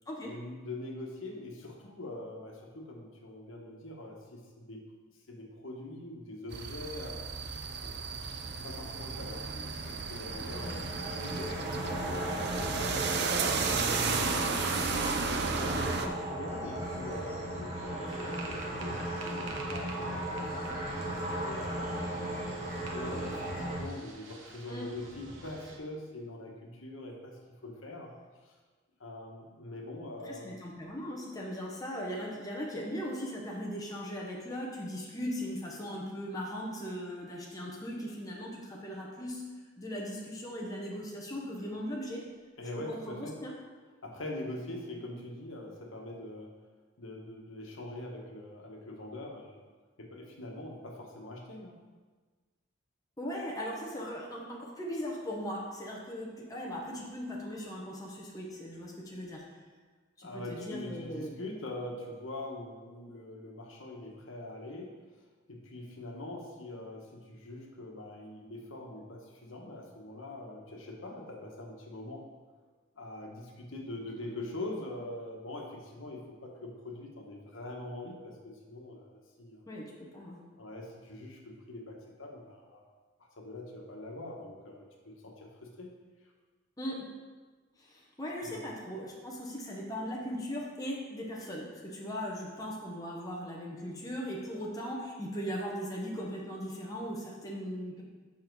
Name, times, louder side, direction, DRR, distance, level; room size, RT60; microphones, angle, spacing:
voice 1, 0.3-4.8 5.3-7.2 7.8-8.1 8.6-12.6 13.1-21.8 22.5-28.1 28.4-28.5 29.0-30.6 42.6-43.4 44.0-46.5 47.0-49.6 50.0-51.8 60.2-64.9 65.5-72.3 72.9-79.7 80.6-82.8 83.2-85.9 86.2-86.3 88.4-88.6, left 1 dB, 80° left, 0 dB, 1.2 m, -43 dB
sound 1, 6.5-16.1, right 4 dB, 55° right, 0.5 m, -33 dB
sound 2, 10.3-23.8, right 1 dB, 30° right, 1.4 m, -36 dB
sound 3, 18.1-25.8, right 3 dB, 70° right, 1.0 m, -48 dB
voice 2, 30.2-39.4 39.8-42.2 42.9-43.5 53.2-59.4 60.2-61.3 79.7-80.4 86.8-87.1 87.8-98.0, equal, 20° left, -3 dB, 1.0 m, -38 dB
7.5 x 5.6 x 4.6 m, 1.4 s
head